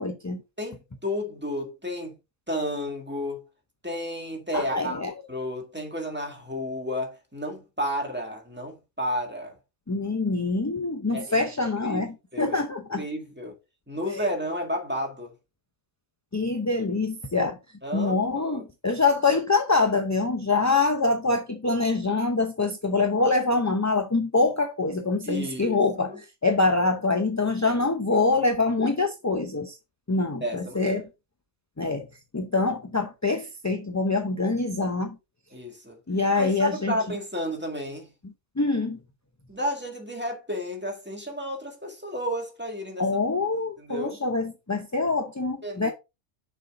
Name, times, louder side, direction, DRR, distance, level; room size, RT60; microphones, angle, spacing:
voice 1, 0.0-0.4 4.5-5.1 9.9-13.1 14.1-14.3 16.3-17.6 17.9-26.1 26.4-29.8 30.1-31.0 31.8-32.0 32.3-35.2 36.1-36.9 38.6-39.0 43.0-45.9, left 3 dB, 20° left, 0.5 m, -25 dB
voice 2, 0.6-2.2 2.5-3.4 3.8-5.0 5.3-9.5 11.1-11.4 11.8-12.6 12.9-13.5 13.9-15.3 17.8-18.7 25.2-25.8 26.1-26.2 27.6-27.8 28.1-28.2 30.4-31.0 35.5-36.0 36.3-38.1 39.5-43.1 43.8-44.2 45.6-45.9, equal, 10° right, 1.8 m, -32 dB
6.6 x 5.5 x 3.6 m
omnidirectional pair, 1.2 m